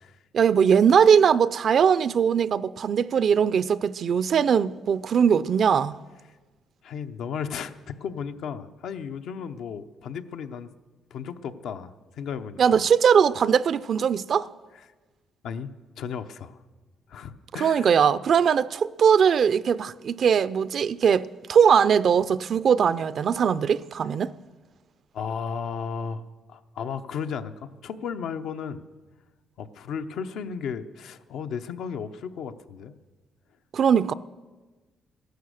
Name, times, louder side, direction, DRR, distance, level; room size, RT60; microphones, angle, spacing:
voice 1, 0.3-6.0 12.6-14.5 17.6-24.3 33.7-34.1, right 7 dB, 55° right, 0.4 m, -20 dB
voice 2, 6.8-10.7 11.1-12.8 15.4-16.6 17.1-17.9 25.1-26.2 26.5-28.8 29.6-32.9, left 6 dB, 75° left, 0.7 m, -34 dB
14.5 x 11.5 x 6.4 m
cardioid pair, 90°, 0 cm